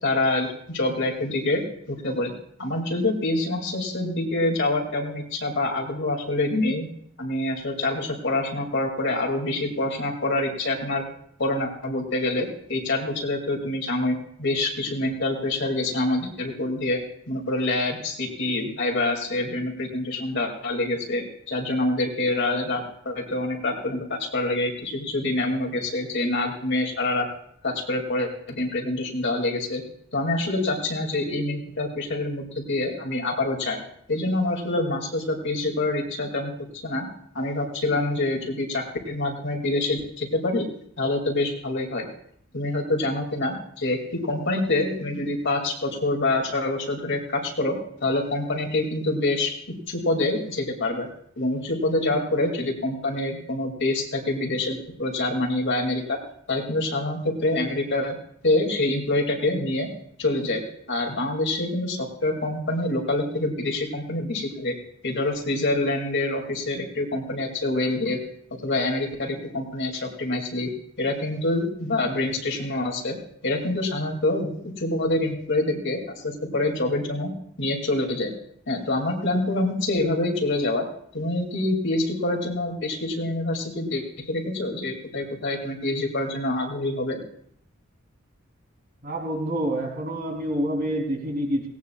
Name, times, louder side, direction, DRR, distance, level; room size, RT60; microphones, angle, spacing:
voice 1, 0.0-2.3 2.6-6.9 7.2-11.0 11.4-17.0 17.3-27.3 27.6-29.8 30.1-33.8 34.1-36.5 36.8-37.0 37.3-40.7 41.0-42.1 42.5-51.1 51.4-56.2 56.5-58.2 58.4-59.9 60.2-60.6 60.9-64.8 65.0-68.2 68.6-70.7 71.0-73.2 73.4-77.3 77.6-78.3 78.7-80.8 81.1-87.2, left 2 dB, 60° left, 1 dB, 2.5 m, -26 dB
voice 2, 89.0-91.7, right 1 dB, 50° right, 0 dB, 3.4 m, -27 dB
18.0 x 18.0 x 2.4 m, 0.67 s
head